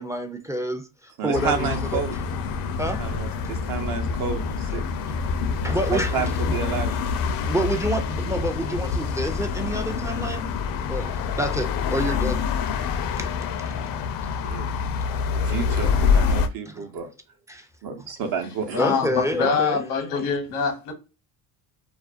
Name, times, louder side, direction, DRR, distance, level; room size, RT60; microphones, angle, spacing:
voice 1, 0.0-2.2 2.8-3.0 4.1-4.2 5.1-5.2 5.6-6.3 7.4-10.5 10.9-12.4 13.2-13.8 16.7-16.9 17.5-17.7 18.8-19.8, equal, 10° right, 0.3 m, -28 dB
voice 2, 1.2-2.1 3.0-4.8 5.9-6.9 14.4-14.7 15.4-17.1 17.8-18.8, right 6 dB, 65° right, 0.7 m, -30 dB
sound 1, 1.3-16.5, left 5 dB, 60° left, 0.5 m, -26 dB
voice 3, 18.7-20.9, left 5 dB, 85° left, 0.9 m, -24 dB
2.4 x 2.1 x 2.3 m
supercardioid pair, 75°, 38 cm